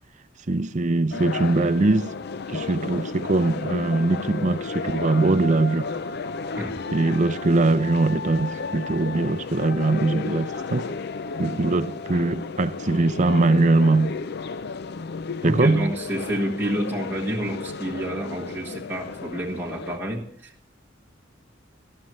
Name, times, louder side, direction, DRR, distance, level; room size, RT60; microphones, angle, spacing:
voice 1, 0.5-2.1 2.5-5.9 6.9-10.9 11.4-14.2 15.4-15.9, right 2 dB, 40° right, 0.6 m, -21 dB
sound 1, 1.1-20.0, left 4 dB, 55° left, 0.5 m, -33 dB
voice 2, 15.4-20.7, right 1 dB, 10° right, 1.4 m, -29 dB
18.5 x 12.5 x 3.2 m
head